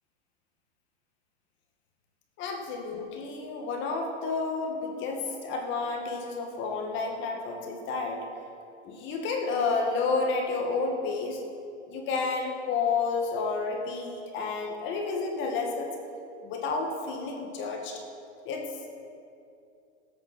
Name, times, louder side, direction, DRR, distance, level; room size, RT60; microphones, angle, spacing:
voice 1, 2.4-8.2 8.8-11.4 11.9-15.9 16.4-18.0 18.5-18.9, left 4 dB, 30° left, 2 dB, 2.0 m, -30 dB
17.0 x 8.5 x 6.1 m, 2.6 s
supercardioid pair, 150°, 36 cm